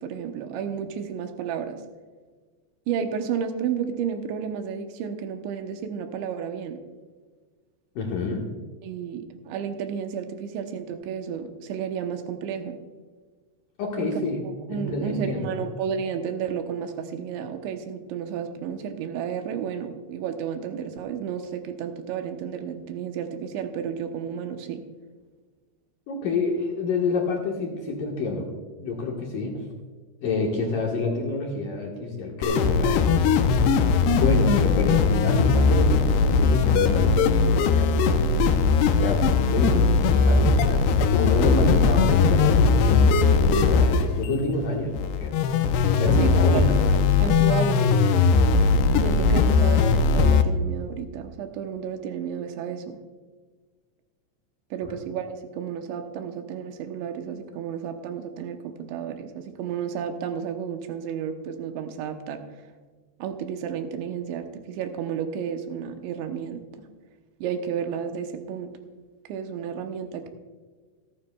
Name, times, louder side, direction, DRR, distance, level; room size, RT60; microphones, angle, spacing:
voice 1, 0.0-1.8 2.9-6.8 8.8-12.8 14.0-14.1 14.7-24.8 46.2-48.0 48.9-53.0 54.7-62.6 63.2-66.6 67.4-68.7 69.2-70.3, right 7 dB, 80° right, 6 dB, 3.1 m, -32 dB
voice 2, 8.0-8.4 13.8-15.6 26.1-28.5 28.8-29.6 30.2-33.1 34.1-38.1 39.0-40.8 41.1-45.3 46.0-46.8, left 3 dB, 65° left, -1 dB, 2.4 m, -28 dB
sound 1, 32.4-50.4, left 4 dB, 80° left, 2.5 m, -20 dB
27.0 x 9.8 x 2.3 m, 1.5 s
omnidirectional pair, 5.3 m